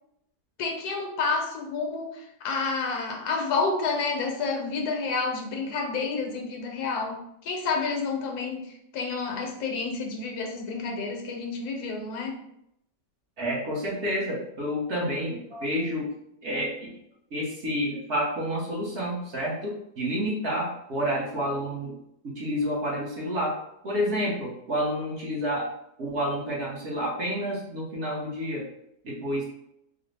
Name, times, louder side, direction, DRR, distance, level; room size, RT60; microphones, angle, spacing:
voice 1, 0.6-12.3, left 4 dB, 75° left, 2 dB, 1.2 m, -29 dB
voice 2, 13.4-16.1 16.4-16.9 17.3-21.9 22.2-23.5 23.8-25.7 26.0-28.6 29.0-29.5, equal, 50° right, -4 dB, 1.0 m, -29 dB
4.0 x 2.0 x 3.2 m, 0.77 s
omnidirectional pair, 1.8 m